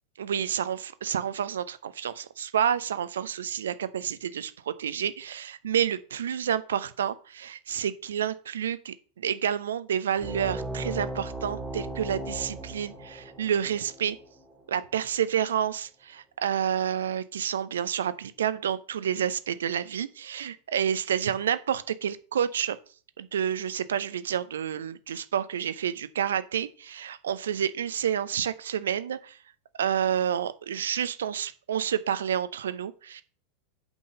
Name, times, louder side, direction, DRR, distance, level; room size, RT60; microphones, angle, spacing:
voice 1, 0.2-14.2 14.7-22.8 23.2-29.3 29.8-33.2, right 9 dB, 65° right, 0.6 m, -29 dB
sound 1, 10.2-15.3, right 1 dB, ahead, 2.1 m, -37 dB
6.0 x 5.5 x 6.6 m
figure-of-eight pair, 90°, 0 cm